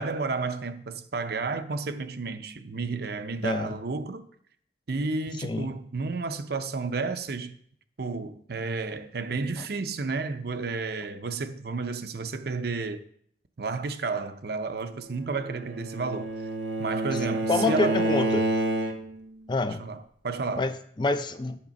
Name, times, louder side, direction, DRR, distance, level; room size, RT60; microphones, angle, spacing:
voice 1, 0.0-4.2 4.9-7.6 8.0-13.0 13.6-16.3 16.8-18.0 19.7-20.7, right 4 dB, 55° right, 0.6 m, -31 dB
voice 2, 3.4-3.7 5.4-5.7 17.5-18.5 19.5-19.8 20.6-21.7, left 3 dB, 25° left, 0.5 m, -27 dB
Bowed string instrument, 15.3-19.3, right 1 dB, 85° right, 1.2 m, -28 dB
8.7 x 6.6 x 5.2 m
head